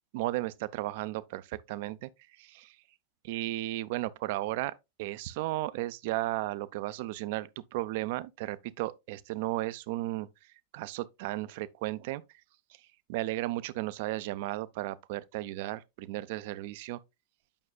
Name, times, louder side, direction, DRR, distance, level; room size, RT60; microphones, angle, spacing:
voice 1, 0.1-2.1 2.4-2.8 3.2-10.3 10.7-12.2 13.1-17.0, right 17 dB, 50° right, 0.5 m, -34 dB
8.8 x 6.2 x 2.3 m
figure-of-eight pair, 90°, 0 cm